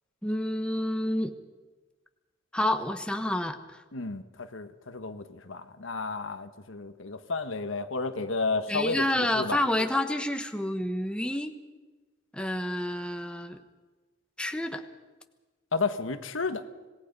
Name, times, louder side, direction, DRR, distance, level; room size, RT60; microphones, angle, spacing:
voice 1, 0.2-1.3 2.5-3.8 8.7-11.5 12.3-13.6 14.4-14.8, left 1 dB, 5° left, 6 dB, 1.2 m, -29 dB
voice 2, 3.9-9.6 15.7-16.6, left 4 dB, 80° left, 9 dB, 1.4 m, -32 dB
26.0 x 19.0 x 5.4 m, 1.3 s
head